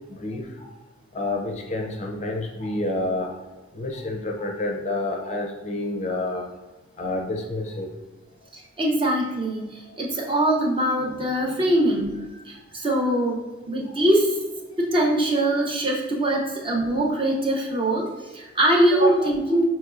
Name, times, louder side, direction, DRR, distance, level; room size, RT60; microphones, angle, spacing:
voice 1, 0.1-0.7 1.1-3.3 3.7-6.5 7.0-7.9 13.9-14.0, left 2 dB, 35° left, 2 dB, 0.5 m, -29 dB
voice 2, 8.5-13.4 13.7-14.4 14.8-19.6, right 1 dB, 25° right, -1 dB, 0.6 m, -22 dB
5.8 x 3.0 x 2.4 m, 1.2 s
head